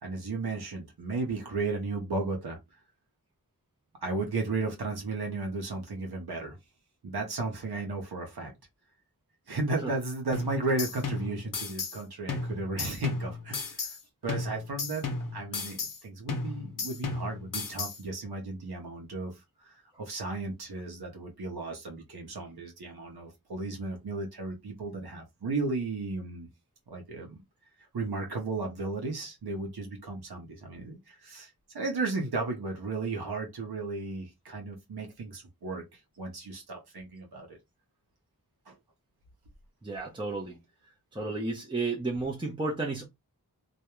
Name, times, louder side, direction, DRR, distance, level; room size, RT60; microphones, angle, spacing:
voice 1, 0.0-2.6 4.0-6.6 7.0-8.5 9.5-14.0 14.2-26.5 26.9-27.4 27.9-31.5 31.7-37.6 38.7-38.8, right 3 dB, 90° right, 0.8 m, -34 dB
sound 1, 10.3-12.0 12.3-14.0 14.3-16.0 16.3-18.0, left 4 dB, 60° left, 0.7 m, -35 dB
voice 2, 39.8-40.6 41.1-43.1, right 3 dB, 15° right, 0.6 m, -32 dB
2.3 x 2.1 x 2.9 m
wide cardioid pair, 40°, 37 cm